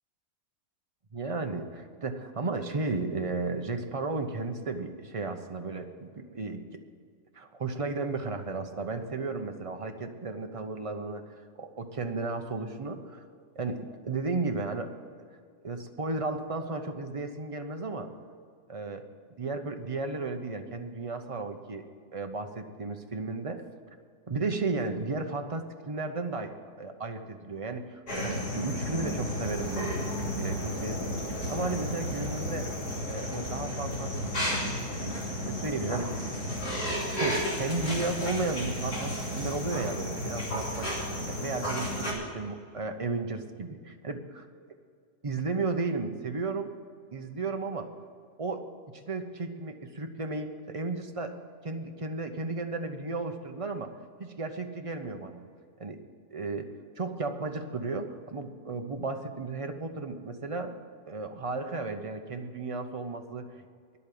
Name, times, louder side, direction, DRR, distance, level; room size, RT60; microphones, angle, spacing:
voice 1, 1.1-6.8 7.3-11.2 11.6-13.2 13.6-14.9 15.6-18.1 18.7-19.0 19.4-21.8 22.1-23.6 24.3-30.1 30.4-31.1 31.5-32.7 33.0-34.1 35.0-36.3 37.1-44.2 45.2-46.7 47.1-47.9 48.4-48.7 48.9-55.4 55.8-56.0 56.3-56.7 57.0-60.8 61.1-63.5, right 3 dB, 35° right, 5 dB, 0.5 m, -34 dB
sound 1, 28.1-42.1, equal, 85° left, 3.7 m, -33 dB
10.5 x 8.3 x 8.4 m, 2.2 s
omnidirectional pair, 1.7 m